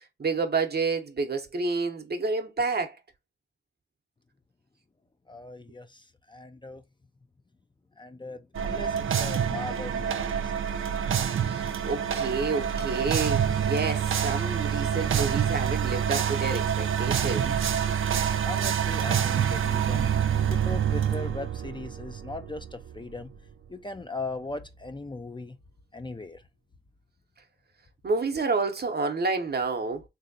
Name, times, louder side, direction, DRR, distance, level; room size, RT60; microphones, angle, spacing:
voice 1, 0.2-3.0 11.3-17.7 28.0-30.0, right 4 dB, 50° right, 0.8 m, -29 dB
voice 2, 5.3-6.8 8.0-10.6 18.4-20.1 20.5-23.3 23.7-25.6 25.9-26.4, left 3 dB, 25° left, 0.5 m, -39 dB
sound 1, 8.5-23.3, right 8 dB, 80° right, 0.5 m, -27 dB
3.2 x 2.7 x 2.6 m
cardioid pair, 45°, 21 cm